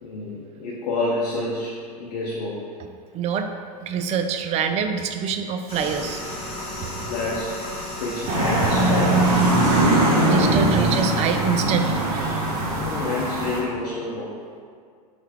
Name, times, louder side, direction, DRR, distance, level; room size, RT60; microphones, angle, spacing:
voice 1, 0.0-2.6 6.8-7.6 8.0-9.4 12.6-14.3, left 2 dB, 65° left, -3 dB, 0.7 m, -29 dB
voice 2, 3.1-3.5 3.8-7.1 9.8-12.1, right 6 dB, 35° right, 6 dB, 0.4 m, -26 dB
sound 1, 5.7-9.8, left 1 dB, 30° left, 1.3 m, -34 dB
sound 2, 8.3-13.6, right 2 dB, 65° right, 1.1 m, -21 dB
4.4 x 3.3 x 3.5 m, 2.1 s
hypercardioid pair, 100°, 20 cm